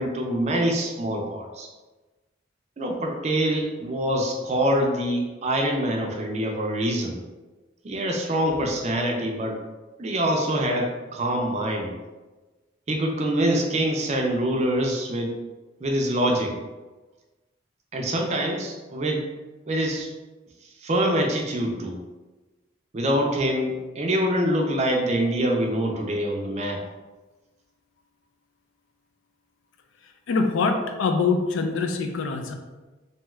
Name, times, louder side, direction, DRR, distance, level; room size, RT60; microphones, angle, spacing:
voice 1, 0.0-1.7 2.8-7.2 7.8-9.6 10.0-11.9 12.9-15.4 15.8-16.5 17.9-19.3 19.7-20.1 20.8-22.0 22.9-26.8, right 1 dB, 35° right, 1 dB, 0.4 m, -25 dB
voice 2, 30.3-32.5, left 4 dB, 85° left, 6 dB, 0.4 m, -24 dB
2.7 x 2.3 x 3.1 m, 1.2 s
head